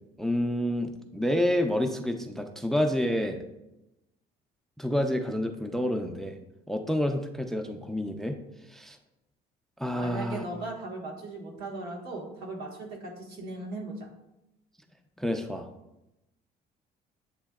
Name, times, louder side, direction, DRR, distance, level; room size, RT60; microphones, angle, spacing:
voice 1, 0.2-3.4 4.8-6.4 6.7-8.4 8.7-9.0 9.8-10.4 15.2-15.7, left 1 dB, ahead, 6 dB, 0.3 m, -28 dB
voice 2, 10.0-14.1, right 2 dB, 80° right, -2 dB, 1.3 m, -38 dB
8.0 x 2.7 x 2.3 m, 0.93 s
cardioid pair, 110°, 17 cm